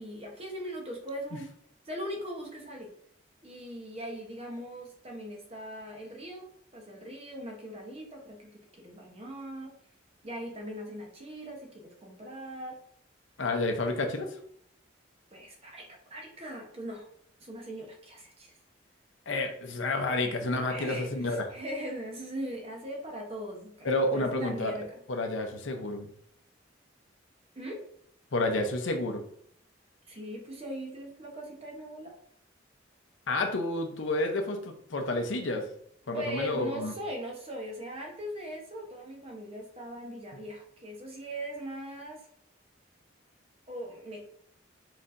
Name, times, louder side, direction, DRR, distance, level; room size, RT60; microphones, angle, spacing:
voice 1, 0.0-1.5 1.8-2.9 3.4-9.7 10.2-12.8 15.3-17.1 17.4-18.5 20.7-25.0 27.5-27.8 30.1-32.2 36.1-42.2 43.7-44.2, equal, 30° right, 1 dB, 0.9 m, -40 dB
voice 2, 13.4-14.4 19.3-21.5 23.8-24.8 25.1-26.1 28.3-29.2 33.3-35.7 36.1-36.9, left 2 dB, 75° left, 4 dB, 0.7 m, -30 dB
4.3 x 4.2 x 2.6 m, 0.66 s
head